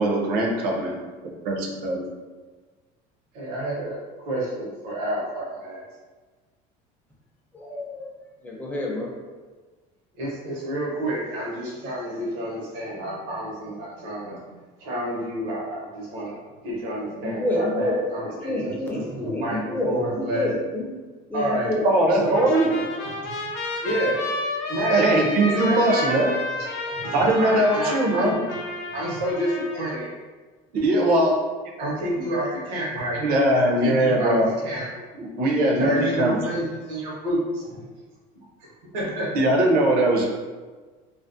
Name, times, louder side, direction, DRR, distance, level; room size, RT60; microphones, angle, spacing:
voice 1, 0.0-0.9 1.5-1.6 1.8-2.0 21.8-22.7 24.9-26.3 27.1-28.4 30.7-31.4 33.2-34.5 35.1-36.4 39.3-40.3, right 1 dB, 55° right, 0 dB, 0.6 m, -20 dB
voice 2, 3.3-5.8 10.2-14.4 14.8-16.4 16.6-20.5 21.3-21.7 22.2-22.4 23.8-24.2 24.7-25.0 25.4-26.4 26.8-28.4 28.9-30.1 31.8-33.2 33.6-34.4 34.6-34.8 35.8-37.8 38.6-39.3, right 1 dB, 80° right, -5 dB, 0.9 m, -29 dB
voice 3, 7.5-8.1 8.4-9.1 17.1-18.0 18.2-20.8 21.3-21.8, left 1 dB, 10° left, -3 dB, 0.5 m, -28 dB
Trumpet, 22.3-30.0, left 3 dB, 80° left, 0.5 m, -31 dB
2.4 x 2.0 x 2.5 m, 1.4 s
cardioid pair, 130°, 19 cm